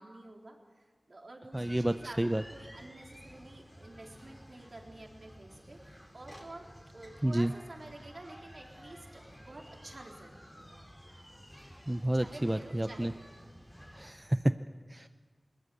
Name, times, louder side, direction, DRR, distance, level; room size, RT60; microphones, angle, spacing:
voice 1, 0.0-6.7 6.9-11.1 12.1-13.5 15.0-15.1, right 2 dB, 65° right, 0 dB, 3.9 m, -50 dB
sound 1, 1.5-14.2, equal, 5° left, 4.3 m, -53 dB
voice 2, 1.5-2.4 7.2-7.5 11.9-13.1 14.0-14.4 14.9-15.1, right 1 dB, 20° right, 10 dB, 0.6 m, -30 dB
21.0 x 20.0 x 7.9 m, 1.5 s
wide cardioid pair, 55°, 0 cm